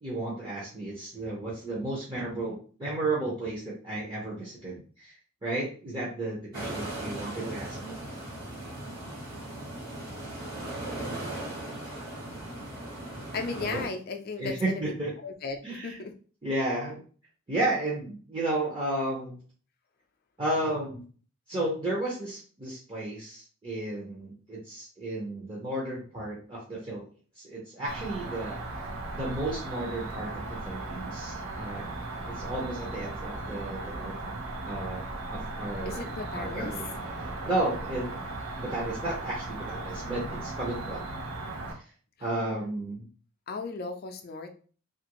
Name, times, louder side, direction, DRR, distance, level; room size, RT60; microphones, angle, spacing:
voice 1, 0.0-5.2 5.4-7.9 13.6-13.8 14.4-15.1 15.6-16.0 16.4-17.0 17.5-19.4 20.4-21.0 21.5-27.0 27.4-28.6 29.1-31.9 32.3-34.3 34.7-36.1 36.4-36.9 37.4-38.2 38.6-41.0 41.7-41.8 42.2-43.1, right 1 dB, 25° right, -6 dB, 0.7 m, -33 dB
sound 1, 6.5-13.9, right 1 dB, 45° right, 1.4 m, -38 dB
voice 2, 13.3-14.9 15.2-16.1 35.9-36.7 43.5-44.5, left 4 dB, 45° left, 5 dB, 0.4 m, -36 dB
Cricket, 27.9-41.7, right 2 dB, 70° right, 0.7 m, -37 dB
2.8 x 2.5 x 2.9 m, 0.41 s
head